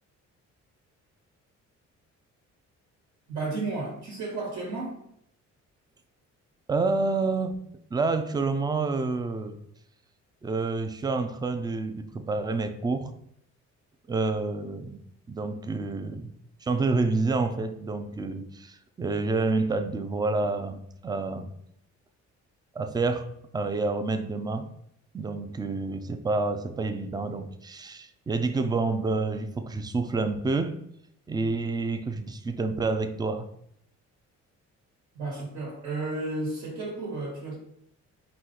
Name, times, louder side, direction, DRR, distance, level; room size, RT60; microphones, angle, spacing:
voice 1, 3.3-4.9 35.1-37.6, right 2 dB, 75° right, -3 dB, 1.5 m, -33 dB
voice 2, 6.7-7.5 7.9-9.6 10.4-13.1 14.1-15.0 15.3-16.3 16.6-21.5 22.7-23.3 23.5-24.7 25.1-30.8 31.3-33.5, right 3 dB, 15° right, 9 dB, 0.3 m, -28 dB
4.3 x 2.5 x 3.8 m, 0.72 s
cardioid pair, 90°, 30 cm